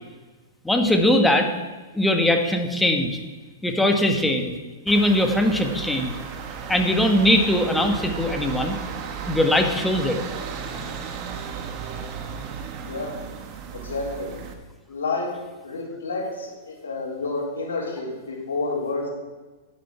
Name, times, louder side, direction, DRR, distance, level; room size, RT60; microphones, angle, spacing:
voice 1, 0.6-1.5 1.9-3.2 3.6-4.5 4.8-6.1 6.7-8.8 9.3-10.2, left 1 dB, 5° left, 3 dB, 1.5 m, -20 dB
sound 1, 4.9-14.5, right 6 dB, 40° right, 1.4 m, -34 dB
voice 2, 12.8-13.1 13.7-14.3 14.9-15.3 15.6-19.1, left 3 dB, 75° left, -6 dB, 3.4 m, -29 dB
10.5 x 9.5 x 4.5 m, 1.3 s
hypercardioid pair, 110°, 0 cm